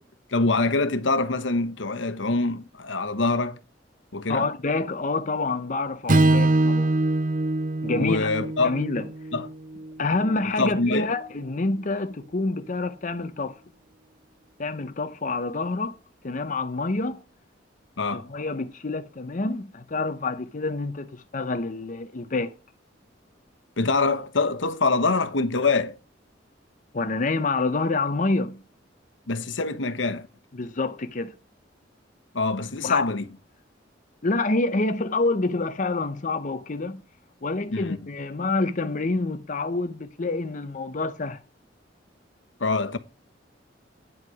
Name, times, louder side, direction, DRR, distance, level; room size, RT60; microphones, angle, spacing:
voice 1, 0.3-3.6 4.1-4.5 7.9-8.8 9.3-9.5 10.6-11.1 18.0-18.3 23.8-26.0 29.3-30.3 32.3-33.2 37.7-38.0 42.6-43.0, left 3 dB, 85° left, 1.1 m, -24 dB
voice 2, 4.3-6.9 7.8-8.3 8.6-9.1 10.0-13.6 14.6-16.0 16.2-17.2 18.1-22.5 26.9-28.6 30.5-31.3 32.8-33.1 34.2-37.0 37.4-41.4, left 3 dB, 45° left, 0.7 m, -27 dB
Strum, 6.1-10.4, right 2 dB, 45° right, 0.8 m, -24 dB
9.6 x 8.0 x 4.8 m
head